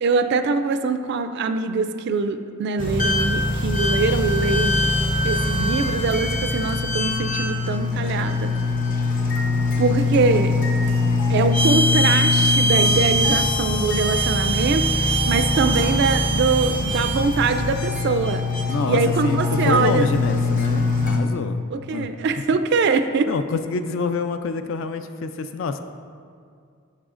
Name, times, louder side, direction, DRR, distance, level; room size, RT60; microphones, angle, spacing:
voice 1, 0.0-4.9 5.2-8.5 9.8-10.5 11.3-18.5 18.9-20.1 21.7-23.3, right 4 dB, 50° right, 9 dB, 0.3 m, -23 dB
sound 1, 2.8-21.2, left 2 dB, 40° left, 0.7 m, -22 dB
voice 2, 18.7-22.1 23.3-25.8, left 4 dB, 60° left, 9 dB, 0.3 m, -27 dB
11.0 x 5.5 x 2.5 m, 2.2 s
head